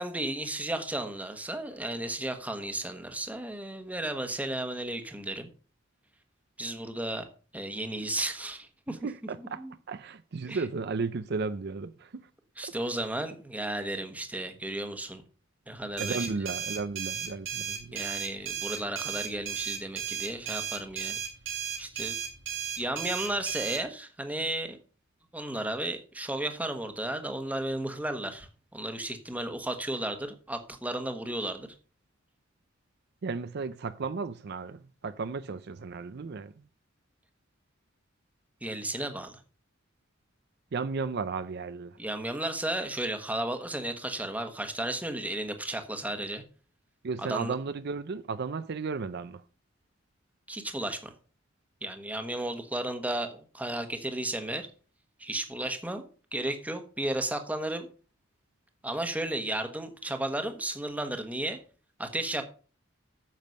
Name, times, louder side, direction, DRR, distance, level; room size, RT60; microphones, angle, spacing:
voice 1, 0.0-5.5 6.6-7.3 7.5-9.0 9.6-9.7 10.5-10.6 12.6-15.2 15.7-16.3 17.9-21.2 21.8-22.2 22.7-24.8 25.3-31.7 38.6-39.4 42.0-46.4 47.2-47.5 50.5-51.1 51.8-54.7 55.2-56.0 56.3-57.9 58.8-61.6 62.0-62.4, right 1 dB, 10° right, 1.2 m, -34 dB
voice 2, 8.9-9.6 9.9-12.3 12.6-12.7 16.0-18.0 33.2-36.6 40.7-42.0 47.0-49.4, right 4 dB, 55° right, 0.5 m, -34 dB
sound 1, 16.0-23.8, right 8 dB, 70° right, 2.9 m, -35 dB
9.4 x 7.2 x 5.3 m
head